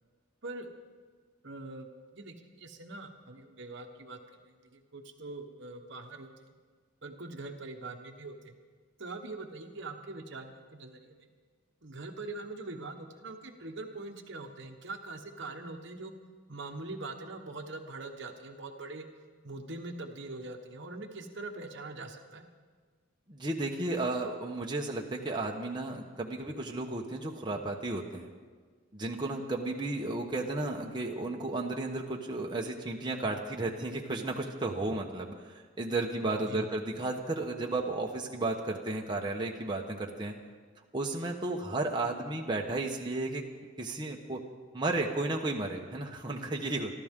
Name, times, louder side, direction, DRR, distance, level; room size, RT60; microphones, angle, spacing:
voice 1, 0.4-0.7 1.4-6.5 7.0-8.5 9.0-11.3 11.8-16.1 16.5-19.1 19.4-22.5 36.4-36.7, right 2 dB, 55° right, 4 dB, 1.2 m, -43 dB
voice 2, 23.3-28.3 28.9-40.3 40.9-43.4 43.8-44.4 44.7-46.9, right 2 dB, 20° right, 0 dB, 1.1 m, -33 dB
28.0 x 12.0 x 3.7 m, 1.5 s
head